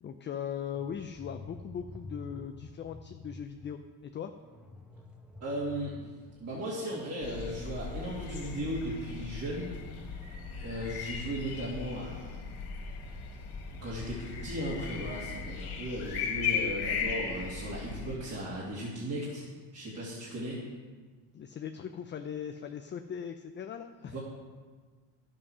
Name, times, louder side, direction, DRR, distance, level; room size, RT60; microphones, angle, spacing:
voice 1, 0.0-4.3 21.3-24.2, left 8 dB, 30° left, 7 dB, 0.4 m, -39 dB
sound 1, 0.7-7.2 7.5-7.6 7.9-12.5 13.0-14.6, left 1 dB, ahead, 1.0 m, -51 dB
voice 2, 5.4-6.1 6.4-10.0 10.6-12.2 13.8-19.4 19.7-20.6 24.0-24.2, equal, 35° right, -7 dB, 2.7 m, -36 dB
sound 2, 7.2-18.2, left 6 dB, 55° left, 2.5 m, -37 dB
11.0 x 7.6 x 6.1 m, 1.4 s
cardioid pair, 125°, 42 cm